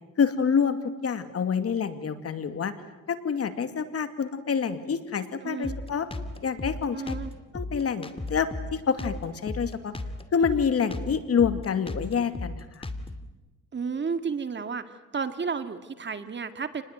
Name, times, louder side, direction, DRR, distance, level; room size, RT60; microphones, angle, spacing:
voice 1, 0.2-2.7 3.1-6.1 6.4-7.1 7.5-9.9 10.3-12.9, left 6 dB, 50° left, 10 dB, 2.4 m, -27 dB
voice 2, 5.4-5.8 6.9-7.3 13.7-14.8 15.1-16.8, right 5 dB, 35° right, 9 dB, 2.1 m, -32 dB
Drum kit, 5.6-13.3, left 2 dB, 20° left, 2.5 m, -36 dB
29.0 x 20.5 x 9.3 m, 1.2 s
cardioid pair, 90°, 30 cm